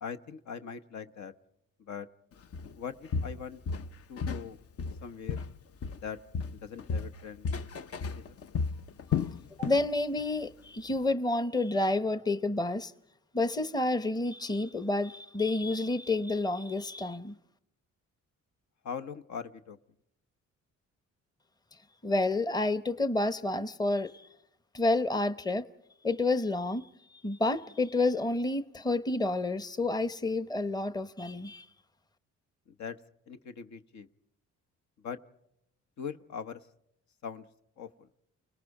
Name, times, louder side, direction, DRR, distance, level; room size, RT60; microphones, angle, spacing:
voice 1, 0.0-1.3 1.8-2.1 2.7-3.6 4.1-4.6 5.0-5.4 6.0-6.2 6.5-7.5 8.1-8.2 18.8-19.8 32.8-33.0 33.3-34.1 35.0-35.2 36.0-36.6 37.2-37.4 37.8-38.1, left 7 dB, 65° left, 1.2 m, -41 dB
Walk footsteps, 2.5-2.7 3.1-4.5 4.8-6.1 6.3-9.9 10.2-10.4 10.9-11.0, left 5 dB, 50° left, 0.8 m, -33 dB
voice 2, 9.6-12.9 13.3-17.3 22.0-24.3 24.7-25.7 26.0-26.9 27.2-31.7, left 2 dB, 15° left, 0.9 m, -29 dB
29.5 x 18.5 x 4.9 m
cardioid pair, 90°, 30 cm